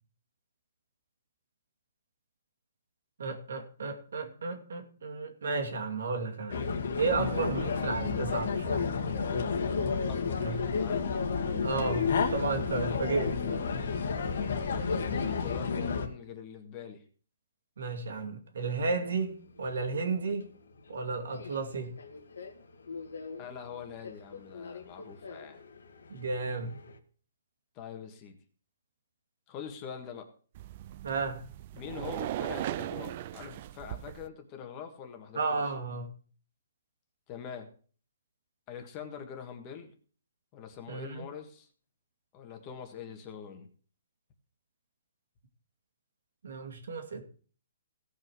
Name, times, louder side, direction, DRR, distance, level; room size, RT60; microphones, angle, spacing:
voice 1, 3.2-6.6 7.0-8.9 10.4-10.6 11.6-13.4 17.8-20.5 20.9-21.9 26.1-26.8 31.0-31.4 35.3-36.1 40.9-41.3 46.4-47.2, right 4 dB, 75° right, 2.4 m, -33 dB
sound 1, 6.5-16.1, left 5 dB, 60° left, 1.8 m, -30 dB
voice 2, 10.1-11.2 14.6-17.0 23.4-25.6 27.7-28.3 29.5-30.3 31.7-35.7 37.3-37.7 38.7-39.9 40.5-41.7 42.3-43.7, left 7 dB, 25° left, 1.6 m, -44 dB
Subway metro underground, 19.1-27.0, left 4 dB, 90° left, 1.9 m, -48 dB
sound 2, 30.5-34.3, right 13 dB, 35° right, 0.4 m, -38 dB
17.0 x 5.7 x 4.7 m
hypercardioid pair, 165°, 0 cm